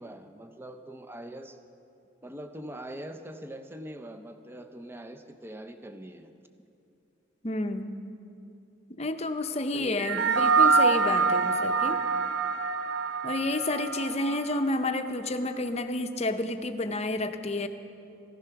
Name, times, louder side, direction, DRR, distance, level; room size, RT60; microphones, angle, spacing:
voice 1, 0.0-1.6 2.2-6.3 9.7-10.2 11.4-11.5, right 1 dB, 10° right, 7 dB, 0.6 m, -42 dB
voice 2, 7.4-8.0 9.0-12.0 13.2-17.7, left 2 dB, 35° left, 8 dB, 0.7 m, -30 dB
sound 1, 10.0-14.7, right 4 dB, 65° right, 0.6 m, -25 dB
15.0 x 12.5 x 5.8 m, 2.6 s
head